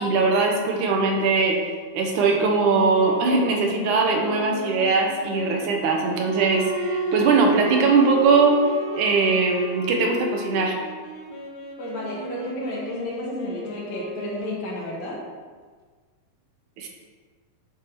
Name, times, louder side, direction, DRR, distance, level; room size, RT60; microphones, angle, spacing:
voice 1, 0.0-1.7 1.9-8.6 9.0-10.8 16.8-16.9, right 4 dB, 80° right, 1 dB, 2.4 m, -21 dB
Wind instrument woodwind instrument, 2.4-14.8, left 2 dB, 80° left, 2.7 m, -36 dB
sound 1, 6.2-10.1, right 6 dB, 55° right, 1.6 m, -30 dB
voice 2, 11.8-15.2, left 1 dB, 65° left, -3 dB, 2.5 m, -32 dB
9.9 x 4.6 x 4.6 m, 1.5 s
omnidirectional pair, 3.6 m